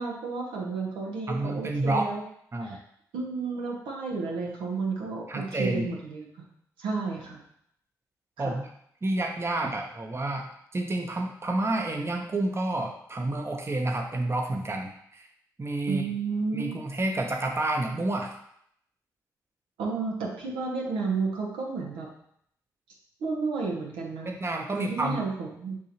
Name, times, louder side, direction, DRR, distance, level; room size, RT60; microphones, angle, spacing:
voice 1, 0.0-2.2 2.6-2.8 3.1-6.4 6.8-7.4 8.4-8.5 15.9-16.7 19.8-22.1 23.2-24.3 24.7-25.8, right 4 dB, 80° right, -1 dB, 0.9 m, -32 dB
voice 2, 1.3-2.1 2.5-2.8 5.3-5.9 8.4-8.7 9.0-15.3 15.6-16.1 16.5-18.4 24.2-25.3, right 2 dB, 30° right, 3 dB, 0.8 m, -29 dB
6.6 x 2.7 x 2.9 m, 0.70 s
hypercardioid pair, 40°, 9 cm